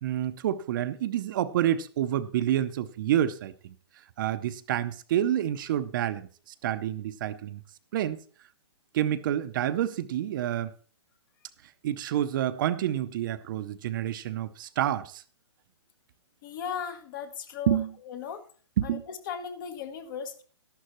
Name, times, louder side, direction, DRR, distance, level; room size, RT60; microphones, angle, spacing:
voice 1, 0.0-3.7 4.2-7.6 7.9-8.2 8.9-10.7 11.8-15.2 17.7-17.9 18.8-19.0, right 11 dB, 45° right, 0.6 m, -28 dB
voice 2, 16.4-17.8 18.1-18.5 18.8-20.4, left 7 dB, 45° left, 1.3 m, -37 dB
13.0 x 11.5 x 3.0 m
hypercardioid pair, 150°, 16 cm